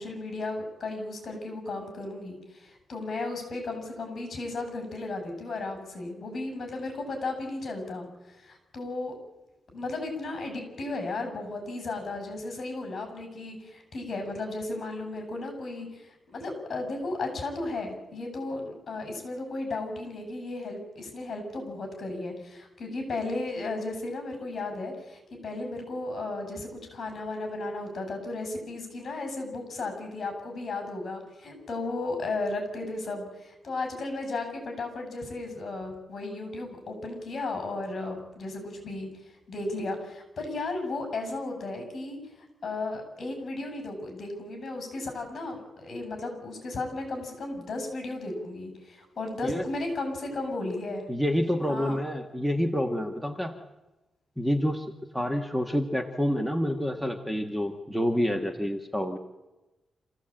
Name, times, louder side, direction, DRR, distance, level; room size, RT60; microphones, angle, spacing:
voice 1, 0.0-9.1 9.7-39.1 39.5-42.2 42.6-51.0 51.7-52.0, left 2 dB, 45° left, 5 dB, 7.6 m, -35 dB
voice 2, 51.1-53.5 54.4-54.8 55.1-59.2, equal, 5° right, 4 dB, 1.4 m, -28 dB
27.0 x 15.5 x 8.9 m, 1.1 s
wide cardioid pair, 155°, 0 cm